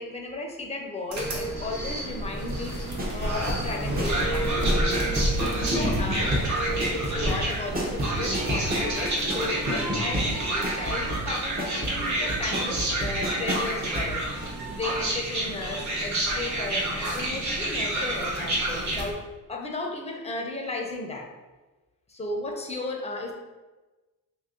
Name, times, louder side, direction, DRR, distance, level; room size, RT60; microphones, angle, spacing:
voice 1, 0.0-2.8 3.1-4.7 5.6-6.3 6.7-14.3 14.7-19.2 19.5-21.3 22.1-23.3, left 2 dB, 20° left, 1 dB, 0.6 m, -34 dB
sound 1, 1.1-19.1, right 1 dB, 50° right, 0.9 m, -29 dB
sound 2, 1.2-9.8, equal, 80° right, 1.3 m, -39 dB
sound 3, 2.5-14.1 14.4-14.5, equal, 25° right, 0.8 m, -31 dB
2.9 x 2.6 x 3.7 m, 1.2 s
cardioid pair, 100°, 36 cm